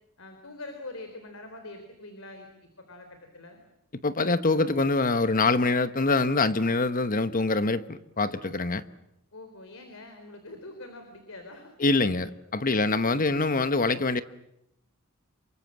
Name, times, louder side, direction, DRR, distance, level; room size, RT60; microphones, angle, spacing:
voice 1, 0.2-3.6 9.3-11.7, left 2 dB, 70° left, 3.9 m, -44 dB
voice 2, 4.0-8.8 11.8-14.2, left 3 dB, 40° left, 1.1 m, -24 dB
27.5 x 24.0 x 7.5 m
head